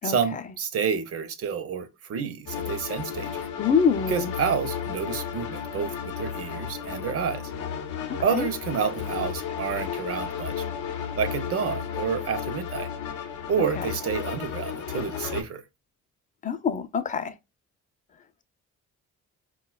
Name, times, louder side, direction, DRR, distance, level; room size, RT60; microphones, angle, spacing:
voice 1, 0.0-3.5 4.1-7.5 8.2-10.6 11.2-12.9 13.5-15.6, right 7 dB, 50° right, 0.6 m, -29 dB
sound 1, 2.5-15.4, left 8 dB, 90° left, 0.6 m, -33 dB
voice 2, 3.6-4.3 8.1-8.5 13.8-13.9 16.4-17.3, left 6 dB, 25° left, 0.4 m, -25 dB
4.1 x 2.2 x 2.2 m
cardioid pair, 90°, 30 cm